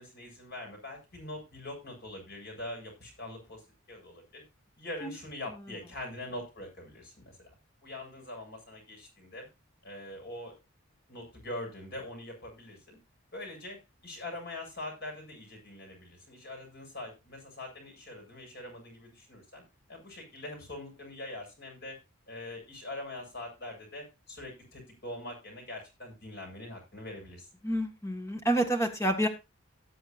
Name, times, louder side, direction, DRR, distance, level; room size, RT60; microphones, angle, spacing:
voice 1, 0.0-3.6 3.9-4.4 4.8-7.5 7.8-9.5 9.8-10.5 11.1-13.0 13.3-19.6 19.9-22.0 22.3-27.5, left 1 dB, 45° left, 1 dB, 7.4 m, -43 dB
voice 2, 27.6-29.3, right 1 dB, 15° left, 4 dB, 1.7 m, -28 dB
18.5 x 8.0 x 2.6 m, 0.26 s
head